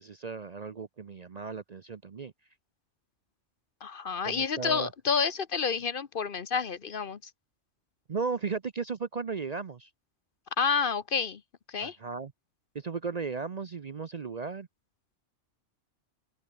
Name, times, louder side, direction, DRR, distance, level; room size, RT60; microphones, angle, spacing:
voice 1, 0.0-2.3 4.2-4.9 8.1-9.9 11.8-12.3 12.7-14.7, right 5 dB, 40° right, 0.7 m, -35 dB
voice 2, 3.8-7.2 10.6-11.4 11.7-12.0, left 5 dB, 50° left, 1.0 m, -29 dB
open air
omnidirectional pair, 1.2 m